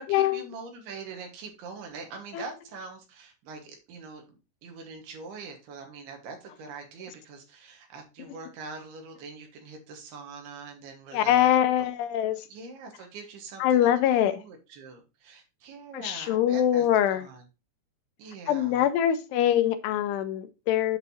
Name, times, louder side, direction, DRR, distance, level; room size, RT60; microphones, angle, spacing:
voice 1, 0.0-11.9 12.5-13.9 14.3-17.4 18.2-18.9, right 4 dB, 70° right, 3 dB, 3.3 m, -43 dB
voice 2, 11.1-12.5 13.6-14.4 15.9-17.3 18.5-21.0, left 11 dB, 80° left, 9 dB, 2.6 m, -23 dB
8.3 x 6.5 x 2.7 m, 0.28 s
omnidirectional pair, 5.0 m